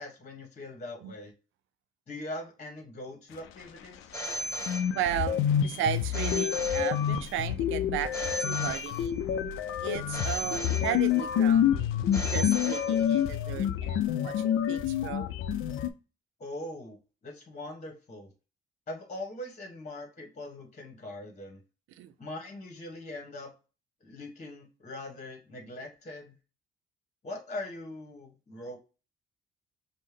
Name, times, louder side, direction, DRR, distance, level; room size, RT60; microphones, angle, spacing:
voice 1, 0.0-1.3 2.1-4.1 16.4-18.3 18.9-21.6 22.2-23.5 24.0-26.3 27.2-28.8, left 1 dB, 35° left, 1.3 m, -41 dB
Telephone, 4.1-5.4 6.1-7.4 8.1-9.4 10.1-11.4 12.1-13.4, equal, 15° left, 1.4 m, -37 dB
sound 1, 4.3-4.4 4.7-15.9, left 9 dB, 85° left, 0.5 m, -28 dB
voice 2, 4.9-9.2 9.8-12.0 12.3-15.3 22.0-22.1, right 11 dB, 85° right, 0.5 m, -35 dB
5.4 x 2.1 x 3.3 m
cardioid pair, 90°, 20 cm